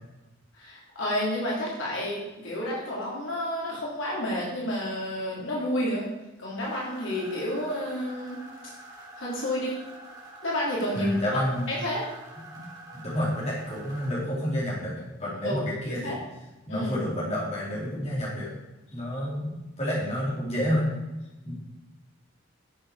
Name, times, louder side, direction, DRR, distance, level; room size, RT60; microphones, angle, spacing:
voice 1, 0.6-6.1 6.4-8.4 9.2-9.8 10.4-11.4 11.7-12.0 15.4-16.2 16.7-16.9, left 1 dB, 65° left, -5 dB, 3.3 m, -30 dB
sound 1, 6.6-14.1, right 1 dB, 20° right, 2.9 m, -47 dB
voice 2, 10.9-11.7 12.5-12.6 12.9-14.9 15.2-16.2 16.7-18.5 18.9-20.9 21.4-21.5, equal, 30° left, -6 dB, 4.1 m, -29 dB
12.5 x 7.4 x 5.0 m, 1.0 s
head